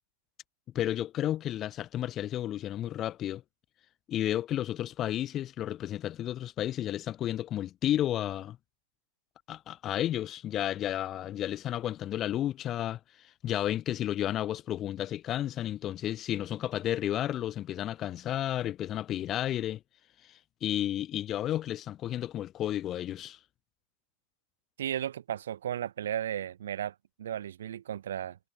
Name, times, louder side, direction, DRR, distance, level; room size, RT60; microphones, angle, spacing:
voice 1, 0.7-3.4 4.1-8.6 9.5-13.0 13.4-19.8 20.6-23.4, left 12 dB, 40° left, 4.8 m, -32 dB
voice 2, 24.8-28.4, right 10 dB, 90° right, 1.3 m, -35 dB
hypercardioid pair, 105°, 0 cm